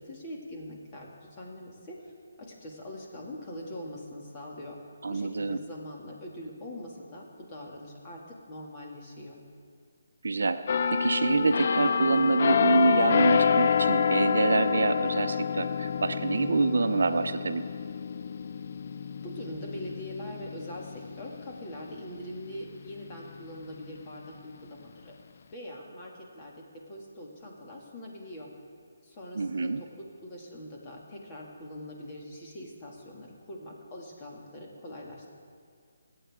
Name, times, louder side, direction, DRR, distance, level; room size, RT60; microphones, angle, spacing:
voice 1, 0.0-2.1 2.4-4.8 5.1-9.4 19.2-25.1 25.5-28.5 29.0-35.3, left 1 dB, 25° left, -2 dB, 2.5 m, -43 dB
voice 2, 5.0-5.6 10.2-10.6 10.9-17.6 29.3-29.8, right 3 dB, 70° right, 9 dB, 0.7 m, -26 dB
sound 1, 10.7-22.2 22.7-22.9, left 7 dB, 50° left, 0.5 m, -28 dB
24.5 x 8.7 x 3.7 m, 2.2 s
figure-of-eight pair, 155°, 0 cm